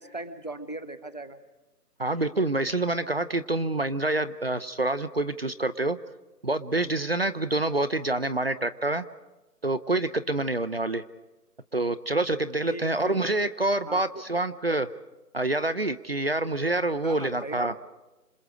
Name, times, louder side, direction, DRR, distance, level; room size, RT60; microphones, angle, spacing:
voice 1, 0.0-1.4 12.7-13.2 13.9-14.0 17.0-17.6, right 2 dB, 25° left, 14 dB, 0.7 m, -38 dB
voice 2, 2.0-6.0 6.4-9.0 9.6-11.0 11.7-14.9 15.3-17.7, right 2 dB, 40° right, 14 dB, 0.7 m, -27 dB
28.0 x 26.5 x 5.0 m, 1.1 s
hypercardioid pair, 170°, 48 cm